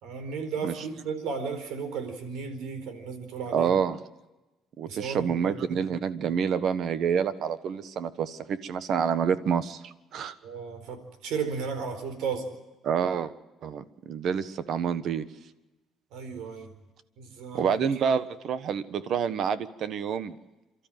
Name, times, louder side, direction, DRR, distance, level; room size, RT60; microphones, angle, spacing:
voice 1, 0.0-3.7 4.9-5.5 10.4-12.5 16.1-16.8 17.2-17.7, right 5 dB, 80° right, 9 dB, 4.4 m, -34 dB
voice 2, 3.5-4.0 4.8-10.3 12.8-13.3 13.6-15.2 17.5-20.3, right 7 dB, 55° right, 14 dB, 1.3 m, -28 dB
29.0 x 13.0 x 9.2 m, 1.1 s
cardioid pair, 130°, 0 cm